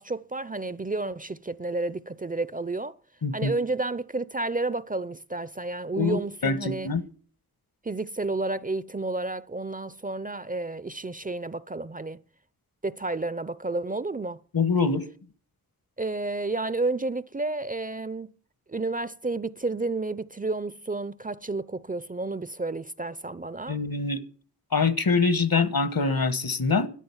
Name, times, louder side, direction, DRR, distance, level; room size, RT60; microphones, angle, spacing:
voice 1, 0.0-3.0 3.3-6.9 7.8-12.2 12.8-14.4 16.0-18.3 18.7-23.8, right 2 dB, 20° right, 0.5 m, -31 dB
voice 2, 6.0-7.0 14.5-15.0 23.7-24.2 24.7-26.9, left 4 dB, 65° left, 1.5 m, -24 dB
13.0 x 10.5 x 7.2 m
cardioid pair, 55°, 37 cm